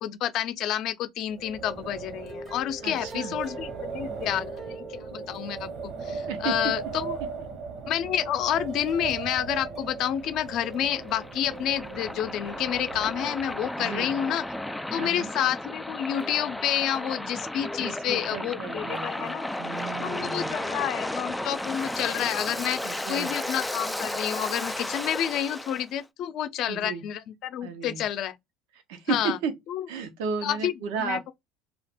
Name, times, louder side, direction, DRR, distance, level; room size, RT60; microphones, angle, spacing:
voice 1, 0.0-7.2 7.9-14.4 14.9-19.5 20.0-28.4 29.1-29.4 29.7-29.8 30.4-30.7 31.0-31.3, left 10 dB, 50° left, 0.6 m, -29 dB
Wind, 1.3-13.9, right 4 dB, 50° right, 1.1 m, -37 dB
sound 1, 2.2-6.7 7.1-7.2 8.5-14.0 16.1-21.2, right 1 dB, 20° right, 0.7 m, -47 dB
voice 2, 2.8-3.4 6.3-6.7 13.8-14.1 15.0-15.3 17.8-20.6 22.8-23.3 26.7-27.0 27.6-28.0 28.9-29.5 29.9-31.3, right 6 dB, 75° right, 0.9 m, -34 dB
Waves surf, 10.1-25.8, left 1 dB, 5° left, 0.3 m, -34 dB
2.5 x 2.4 x 3.5 m
cardioid pair, 135°, 0 cm